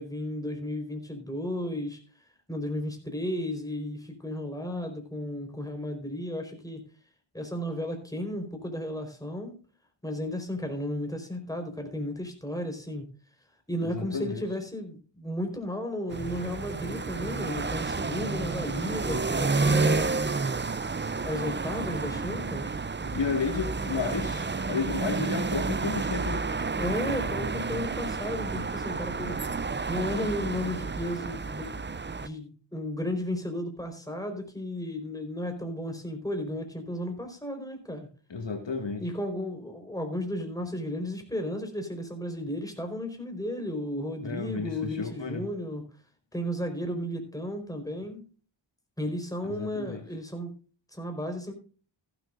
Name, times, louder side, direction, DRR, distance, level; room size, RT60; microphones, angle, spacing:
voice 1, 0.0-2.0 2.5-6.8 7.3-9.5 10.0-13.1 13.7-20.1 21.2-22.8 26.8-38.1 39.0-45.8 46.3-48.2 49.0-50.5 50.9-51.5, left 1 dB, 5° left, 4 dB, 4.4 m, -34 dB
voice 2, 13.8-14.4 23.1-26.5 38.3-39.0 44.2-45.4 49.4-50.0, left 4 dB, 65° left, 4 dB, 2.1 m, -32 dB
sound 1, 16.1-32.3, right 4 dB, 25° right, 0.6 m, -30 dB
15.5 x 12.0 x 2.6 m, 0.38 s
wide cardioid pair, 65°, 47 cm